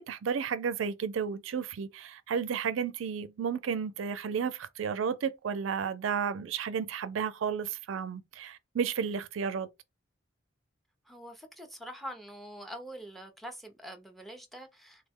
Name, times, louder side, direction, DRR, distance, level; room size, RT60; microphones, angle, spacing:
voice 1, 0.0-9.7, right 6 dB, 85° right, 0.4 m, -32 dB
voice 2, 11.1-15.1, equal, ahead, 0.5 m, -44 dB
3.5 x 2.1 x 3.4 m
head